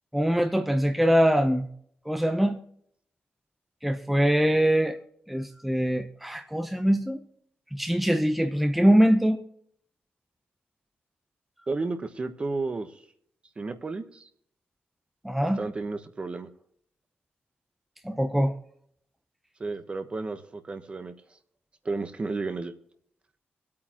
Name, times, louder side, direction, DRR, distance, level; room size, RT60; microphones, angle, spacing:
voice 1, 0.1-1.7 2.1-2.6 3.8-5.0 5.3-7.2 7.7-9.4 15.2-15.6 18.0-18.5, equal, 5° right, 0.8 m, -23 dB
voice 2, 11.7-13.0 13.6-14.3 15.5-16.5 19.6-21.1 21.8-22.7, right 3 dB, 30° right, 1.0 m, -32 dB
25.0 x 8.7 x 3.0 m
wide cardioid pair, 135°, 4 cm